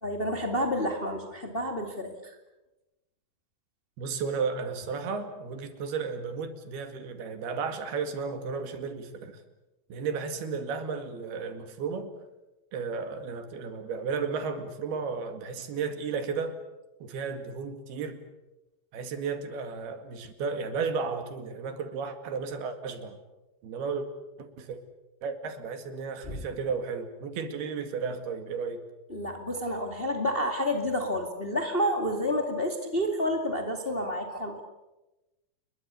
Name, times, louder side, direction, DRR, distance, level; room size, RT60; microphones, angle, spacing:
voice 1, 0.0-2.4 26.2-26.4 29.1-34.6, equal, 20° left, 4 dB, 1.7 m, -29 dB
voice 2, 4.0-9.4 9.9-12.1 12.7-16.6 17.0-18.2 18.9-23.2 23.6-24.1 24.4-24.8 25.2-28.8, right 5 dB, 85° right, 7 dB, 4.2 m, -33 dB
29.5 x 22.0 x 7.0 m, 1.0 s
omnidirectional pair, 4.4 m